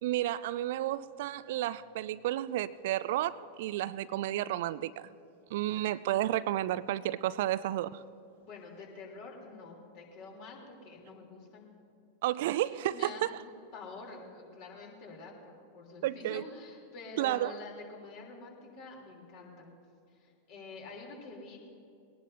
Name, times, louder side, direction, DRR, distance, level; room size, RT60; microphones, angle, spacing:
voice 1, 0.0-5.1 5.5-8.0 12.2-13.4 16.0-16.4 17.2-17.5, right 14 dB, 55° right, 0.3 m, -32 dB
voice 2, 8.4-11.7 12.7-13.3 13.7-19.7 20.1-21.6, left 4 dB, 45° left, 3.4 m, -47 dB
21.5 x 18.5 x 2.7 m
figure-of-eight pair, 90°, 0 cm